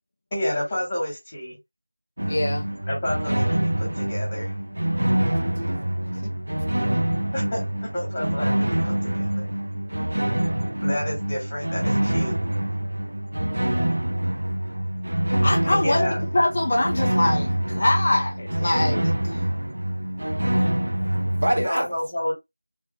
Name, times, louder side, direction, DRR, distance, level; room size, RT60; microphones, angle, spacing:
voice 1, 0.3-1.5 2.9-4.5 7.3-9.5 10.8-12.4 15.7-16.2 21.6-22.3, left 1 dB, 15° left, 2.0 m, -29 dB
sound 1, 2.2-21.6, right 1 dB, 65° right, 0.8 m, -25 dB
voice 2, 2.3-2.7 15.4-16.1 16.3-19.4, left 1 dB, 30° left, 0.5 m, -23 dB
voice 3, 4.9-6.7 21.4-22.0, equal, 40° right, 1.8 m, -29 dB
3.6 x 3.3 x 3.8 m
figure-of-eight pair, 175°, 0 cm